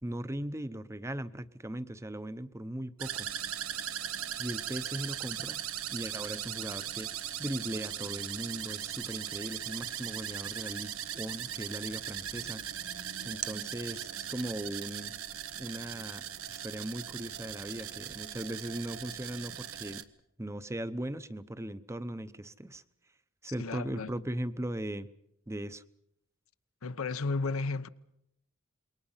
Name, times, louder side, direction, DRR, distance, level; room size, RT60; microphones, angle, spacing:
voice 1, 0.0-3.3 4.4-5.6 5.9-12.6 13.2-15.1 15.5-20.0 20.4-22.8 23.4-25.1 25.5-25.8, right 1 dB, 15° right, 0.8 m, -38 dB
sound 1, 3.0-20.0, right 10 dB, 85° right, 1.2 m, -39 dB
voice 2, 23.6-24.1 26.8-27.9, left 3 dB, 80° left, 0.8 m, -33 dB
28.0 x 22.5 x 5.7 m
head